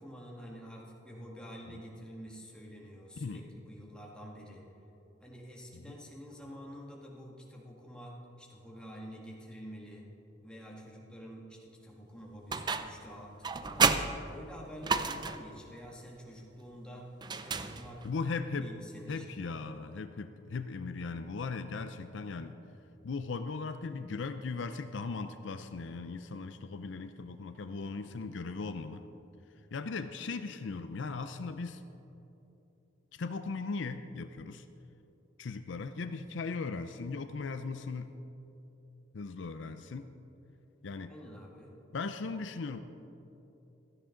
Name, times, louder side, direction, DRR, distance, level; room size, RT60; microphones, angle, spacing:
voice 1, 0.0-4.6 5.2-10.1 10.4-17.1 17.4-18.2 18.6-19.3 33.1-33.2 41.1-41.7, equal, 5° left, -3 dB, 1.7 m, -48 dB
sound 1, 12.5-13.1 13.4-15.5 17.2-18.2, right 5 dB, 20° right, 0.4 m, -31 dB
voice 2, 18.0-18.7 19.1-22.5 23.0-29.0 29.7-31.8 33.2-34.7 35.4-38.1 39.1-40.1 40.8-41.1 41.9-42.8, left 4 dB, 65° left, 9 dB, 0.5 m, -38 dB
16.0 x 13.0 x 3.8 m, 3.0 s
head